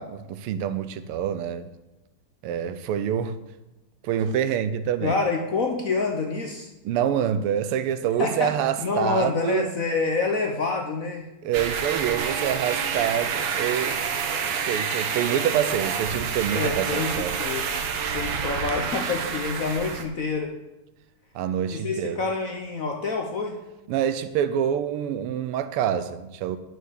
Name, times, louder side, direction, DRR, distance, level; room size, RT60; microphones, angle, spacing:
voice 1, 0.0-1.7 2.4-3.3 4.0-5.2 6.8-9.7 11.4-14.0 14.4-17.4 21.3-22.2 23.9-26.6, right 9 dB, 90° right, 12 dB, 1.6 m, -26 dB
voice 2, 5.0-6.7 8.2-11.3 16.5-17.7 18.1-20.5 21.7-23.6, left 4 dB, 60° left, 2 dB, 0.9 m, -27 dB
sound 1, 11.5-20.0, right 6 dB, 70° right, 1.6 m, -28 dB
9.1 x 6.5 x 6.5 m, 1.0 s
omnidirectional pair, 2.4 m